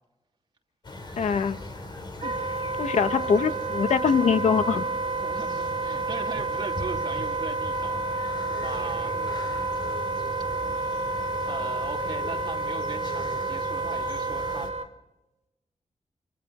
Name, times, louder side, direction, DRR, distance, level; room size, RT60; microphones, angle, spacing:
sound 1, 0.8-14.7, left 2 dB, 40° left, 4.1 m, -39 dB
voice 1, 1.2-1.6 2.2-2.3 2.8-4.8, left 6 dB, 80° left, 10 dB, 1.1 m, -23 dB
Wind instrument woodwind instrument, 2.2-14.9, right 3 dB, 65° right, 1.8 m, -30 dB
voice 2, 5.2-9.3 10.6-10.8 11.5-14.7, right 4 dB, 40° right, 1 dB, 3.0 m, -39 dB
27.5 x 25.5 x 4.3 m, 0.98 s
wide cardioid pair, 160°, 11 cm